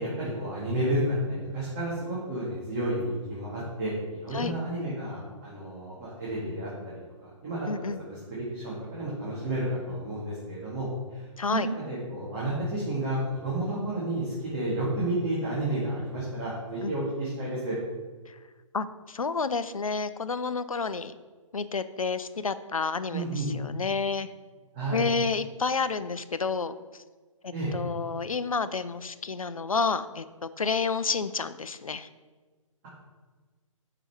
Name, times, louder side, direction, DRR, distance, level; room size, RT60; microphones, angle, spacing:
voice 1, 0.0-6.7 7.2-17.8 23.1-23.5 24.7-25.1 27.5-27.7, right 1 dB, 30° right, -8 dB, 2.0 m, -31 dB
voice 2, 7.6-8.0 11.4-11.7 16.8-16.9 18.3-18.4 18.7-21.2 21.5-24.3 24.9-27.0 27.4-32.1, left 4 dB, 85° left, 13 dB, 0.5 m, -30 dB
5.8 x 5.3 x 4.4 m, 1.4 s
figure-of-eight pair, 130°, 17 cm